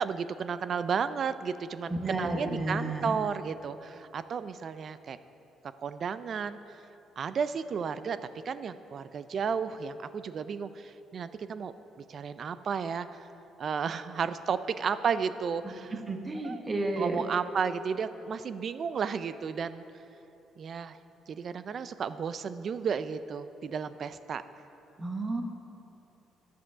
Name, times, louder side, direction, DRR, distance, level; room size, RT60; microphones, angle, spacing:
voice 1, 0.0-5.2 5.8-6.6 7.2-8.2 8.4-11.7 12.1-13.3 13.6-16.0 16.4-16.6 17.0-19.8 20.6-21.0 21.3-24.4, right 6 dB, 50° right, 13 dB, 0.4 m, -33 dB
voice 2, 1.9-3.1 15.9-17.2 25.0-25.4, right 2 dB, 25° right, 3 dB, 1.2 m, -31 dB
11.0 x 6.8 x 6.2 m, 3.0 s
cardioid pair, 105°, 0 cm